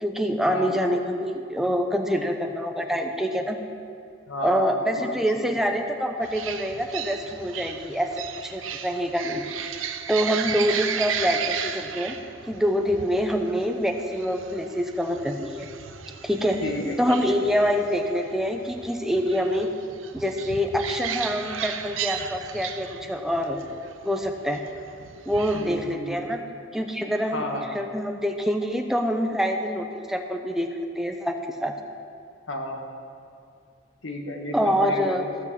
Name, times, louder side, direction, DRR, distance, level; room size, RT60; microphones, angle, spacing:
voice 1, 0.0-3.6 4.4-9.4 10.1-12.2 12.5-15.7 16.2-16.6 17.0-19.7 20.1-23.6 24.0-24.6 25.3-26.4 26.7-27.5 27.7-30.7 31.0-31.7 34.5-35.2, equal, ahead, 4 dB, 0.7 m, -25 dB
voice 2, 4.3-5.6 16.6-17.2 25.5-26.2 27.3-27.8 32.5-32.9 34.0-35.3, left 1 dB, 75° left, 3 dB, 1.4 m, -32 dB
sound 1, 6.2-25.9, right 8 dB, 85° right, 0.7 m, -35 dB
14.5 x 6.1 x 7.3 m, 2.4 s
head